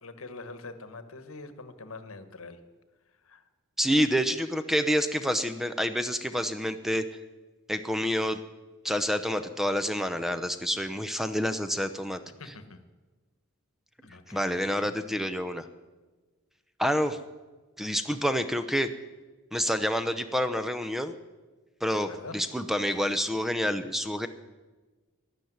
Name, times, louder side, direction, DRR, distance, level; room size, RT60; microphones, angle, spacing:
voice 1, 0.0-2.6 3.2-3.5 12.4-12.8 14.0-14.9 21.9-22.4, left 3 dB, 70° left, 11 dB, 1.3 m, -44 dB
voice 2, 3.8-7.0 7.7-8.4 8.8-12.2 14.3-15.7 16.8-17.2 17.8-18.9 19.5-21.1 21.8-24.3, equal, ahead, 10 dB, 0.7 m, -28 dB
12.5 x 12.0 x 9.4 m, 1.3 s
head